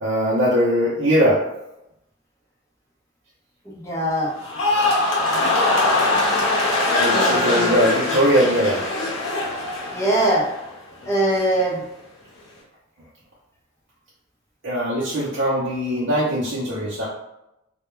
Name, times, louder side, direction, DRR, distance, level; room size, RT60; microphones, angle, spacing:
voice 1, 0.0-1.4 7.0-8.8 14.6-17.1, equal, 65° right, -9 dB, 0.6 m, -20 dB
voice 2, 3.6-4.3 7.1-7.8 9.9-10.5 11.0-11.8, right 1 dB, 15° left, -6 dB, 0.8 m, -22 dB
sound 1, 4.4-10.7 11.0-11.5, left 2 dB, 70° left, 0.8 m, -22 dB
2.3 x 2.1 x 3.1 m, 0.86 s
head